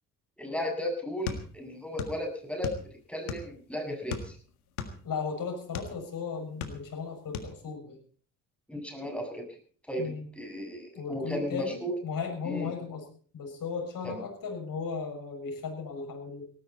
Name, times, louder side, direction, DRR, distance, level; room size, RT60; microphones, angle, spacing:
voice 1, 0.4-2.7 3.1-4.4 8.7-9.6 9.9-11.9 12.4-12.7 14.0-14.2, equal, 5° left, 4 dB, 7.4 m, -35 dB
sound 1, 1.3-2.2 2.5-3.6 4.1-6.0 6.4-7.0 7.3-7.5, left 6 dB, 85° left, 1.8 m, -37 dB
voice 2, 5.0-8.0 10.0-10.3 10.9-13.1 13.3-16.4, left 5 dB, 50° left, 2 dB, 6.6 m, -36 dB
18.0 x 15.0 x 4.2 m, 0.43 s
hypercardioid pair, 55°, 42 cm